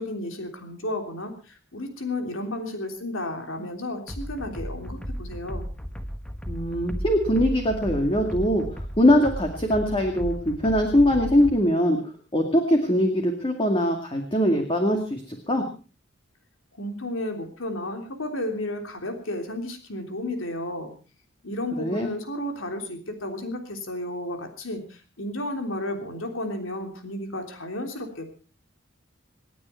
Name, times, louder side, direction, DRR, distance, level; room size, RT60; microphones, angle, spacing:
voice 1, 0.0-5.6 16.8-20.9 21.4-28.3, left 1 dB, 85° left, 5 dB, 3.3 m, -32 dB
sound 1, 4.1-11.6, equal, 5° left, 1.3 m, -35 dB
voice 2, 6.5-8.6 9.0-12.0 12.3-15.6 21.8-22.1, equal, 25° left, 3 dB, 2.2 m, -22 dB
28.0 x 9.7 x 4.4 m, 0.35 s
head